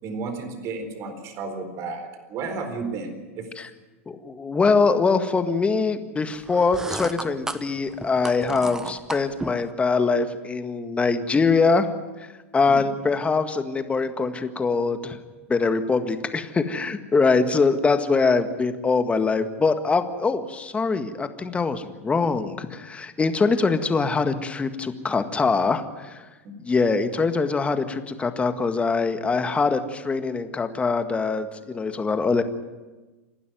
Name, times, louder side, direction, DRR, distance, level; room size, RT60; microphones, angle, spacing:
voice 1, 0.0-3.5 12.7-12.9, right 4 dB, 45° right, 8 dB, 4.2 m, -33 dB
voice 2, 4.1-11.9 12.5-15.2 15.5-26.1 26.6-32.4, left 4 dB, 15° left, 9 dB, 1.8 m, -23 dB
sound 1, 6.4-9.7, right 2 dB, 5° right, 1.0 m, -34 dB
28.5 x 12.5 x 9.3 m, 1.2 s
hypercardioid pair, 90°, 7 cm